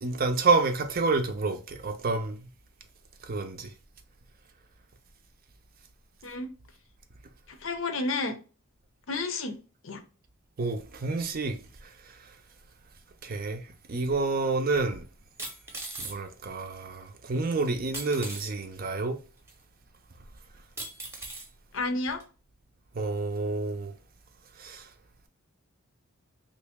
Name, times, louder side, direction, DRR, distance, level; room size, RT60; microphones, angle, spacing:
voice 1, 0.0-2.5 3.2-3.7 10.6-12.3 13.2-15.0 16.0-19.2 22.9-23.9 24.6-24.9, right 3 dB, 45° right, 0.5 m, -29 dB
voice 2, 7.5-8.4 9.1-9.6 9.8-10.0 21.7-22.2, left 3 dB, 65° left, 0.6 m, -31 dB
sound 1, 14.1-14.2 15.4-16.2 17.9-18.5 19.5-19.6 20.8-21.5 22.2-22.3, right 2 dB, 10° right, 0.7 m, -38 dB
3.1 x 2.6 x 3.4 m
head